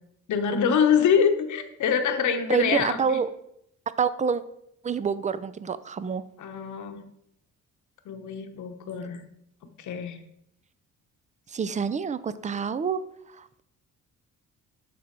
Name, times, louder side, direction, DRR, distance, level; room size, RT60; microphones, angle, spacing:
voice 1, 0.3-3.2 6.4-7.1 8.0-9.2 9.8-10.2, left 7 dB, 65° left, 7 dB, 1.2 m, -25 dB
voice 2, 2.5-3.3 4.0-4.4 4.8-6.2 11.5-13.0 13.3-13.6, right 6 dB, 25° right, 15 dB, 0.5 m, -27 dB
11.5 x 4.0 x 4.4 m, 0.77 s
cardioid pair, 95°, 31 cm